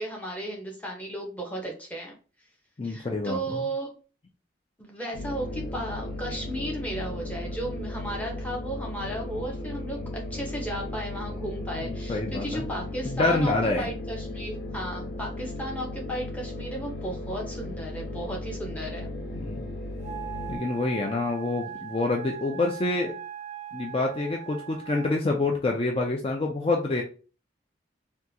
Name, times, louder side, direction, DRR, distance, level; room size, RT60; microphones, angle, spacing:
voice 1, 0.0-2.1 2.8-3.9 4.8-19.1 21.7-21.8, right 1 dB, 10° left, -1 dB, 0.9 m, -35 dB
voice 2, 2.8-3.4 11.8-12.6 13.0-13.9 19.3-19.7 20.5-23.1 23.7-27.0, left 2 dB, 30° left, 1 dB, 0.4 m, -27 dB
sound 1, 5.1-20.6, left 1 dB, 55° left, 1.0 m, -36 dB
Wind instrument woodwind instrument, 20.0-25.2, right 10 dB, 40° right, 0.4 m, -40 dB
3.7 x 2.3 x 2.8 m, 0.36 s
head